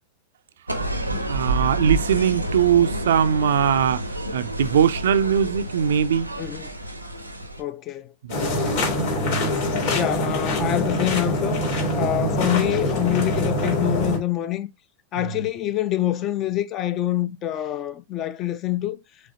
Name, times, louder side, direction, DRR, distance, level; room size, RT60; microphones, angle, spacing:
sound 1, 0.7-7.6, right 1 dB, 90° right, 0.7 m, -29 dB
voice 1, 1.3-6.3 8.2-8.4 15.2-15.4, right 8 dB, 60° right, 0.4 m, -21 dB
voice 2, 7.6-8.1 8.4-8.8 9.3-9.6 9.9-11.6 12.0-14.7 15.1-19.0, left 13 dB, 35° left, 0.5 m, -26 dB
sound 2, 8.3-14.2, left 1 dB, 55° left, 2.1 m, -24 dB
5.0 x 3.5 x 2.8 m
figure-of-eight pair, 90°, 0 cm